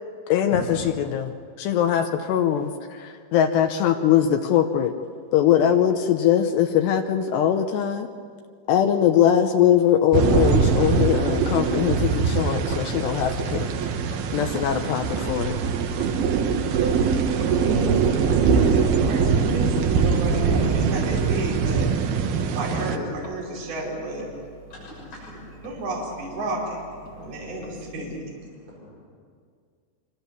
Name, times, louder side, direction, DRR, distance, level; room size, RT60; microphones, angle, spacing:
voice 1, 0.3-4.9 5.3-8.1 8.7-13.7 14.3-15.6, left 9 dB, 80° left, 6 dB, 2.5 m, -21 dB
sound 1, 10.1-23.0, right 6 dB, 70° right, 2.4 m, -22 dB
sound 2, 12.1-28.2, equal, 15° left, 3.7 m, -45 dB
voice 2, 16.2-16.7 24.7-25.5 27.1-27.4 28.7-28.9, left 2 dB, 55° left, -6 dB, 8.9 m, -42 dB
voice 3, 16.9-21.9 22.5-24.3 25.6-28.5, right 1 dB, 50° right, -4 dB, 6.6 m, -32 dB
26.0 x 25.5 x 7.1 m, 2.1 s
omnidirectional pair, 5.8 m